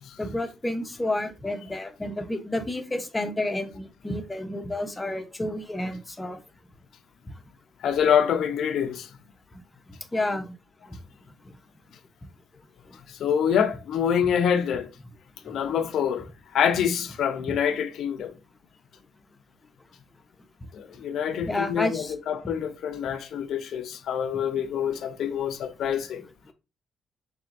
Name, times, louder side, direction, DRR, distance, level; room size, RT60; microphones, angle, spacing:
voice 1, 0.2-6.4 9.5-9.6 10.1-10.5 10.9-11.0 11.4-11.5 12.9-13.0 15.5-15.6 21.4-22.1 26.5-26.6, left 1 dB, 15° left, 0.8 m, -30 dB
voice 2, 7.8-9.1 13.1-14.9 15.4-16.3 16.5-18.3 20.7-26.2, left 8 dB, 70° left, 0.6 m, -26 dB
4.5 x 3.3 x 2.6 m
cardioid pair, 90°, 0 cm